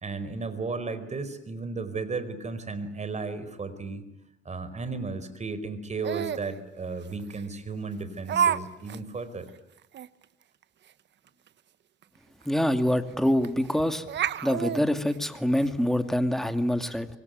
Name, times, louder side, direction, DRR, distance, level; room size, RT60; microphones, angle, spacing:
voice 1, 0.0-4.0 4.4-9.5, right 4 dB, 35° right, 12 dB, 4.8 m, -34 dB
Laughter, 6.0-6.5 7.3-7.4 8.3-8.6 8.9-9.0 9.5-9.6 9.9-10.1 12.0-12.1 12.4-12.5 13.4-13.7 14.1-15.7, right 8 dB, 60° right, 1.1 m, -28 dB
voice 2, 12.5-14.0 14.4-17.1, equal, ahead, 8 dB, 2.4 m, -25 dB
25.5 x 24.5 x 9.5 m, 0.91 s
cardioid pair, 90°, 20 cm